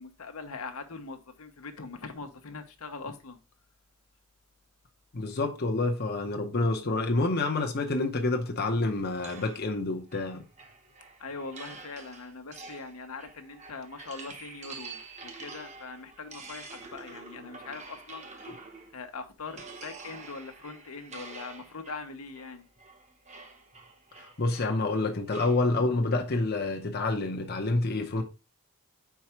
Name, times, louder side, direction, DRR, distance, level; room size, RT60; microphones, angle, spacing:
voice 1, 0.0-3.4 11.2-18.5 18.9-22.7 27.3-27.5, left 4 dB, 80° left, 1.0 m, -42 dB
voice 2, 5.1-10.4 18.5-18.6 24.2-28.2, left 2 dB, 45° left, 0.8 m, -28 dB
sound 1, 9.2-19.0 19.5-25.7, right 4 dB, 30° right, 1.0 m, -47 dB
4.8 x 4.6 x 4.3 m
head